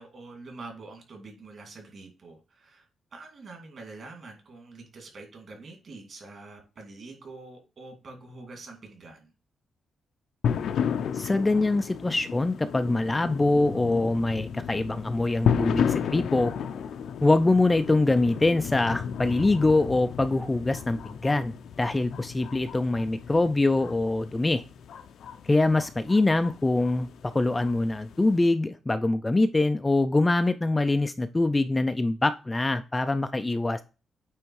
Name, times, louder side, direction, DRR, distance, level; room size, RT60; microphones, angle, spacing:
voice 1, 0.0-2.9 3.1-9.3, right 3 dB, 45° right, 3 dB, 2.5 m, -45 dB
sound 1, 10.4-28.4, left 7 dB, 75° left, 0.7 m, -33 dB
voice 2, 11.1-16.5 17.2-24.6 25.4-33.8, left 2 dB, 15° left, 10 dB, 0.4 m, -24 dB
8.8 x 3.5 x 4.7 m, 0.31 s
wide cardioid pair, 165°, 0 cm